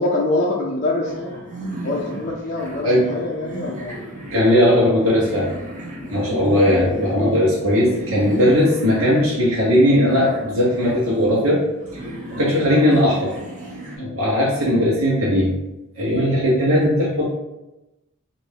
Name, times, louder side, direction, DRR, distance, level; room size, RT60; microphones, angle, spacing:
voice 1, 0.0-1.4 1.8-4.1 6.0-6.3 14.0-14.2 16.3-16.5, left 2 dB, 35° left, -3 dB, 0.5 m, -25 dB
sound 1, 1.0-14.0, right 1 dB, 40° right, 0.8 m, -35 dB
voice 2, 4.3-5.5 6.1-11.6 12.3-13.3 14.0-15.5 16.0-17.2, equal, 75° right, -5 dB, 0.9 m, -18 dB
3.4 x 2.5 x 3.3 m, 0.97 s
head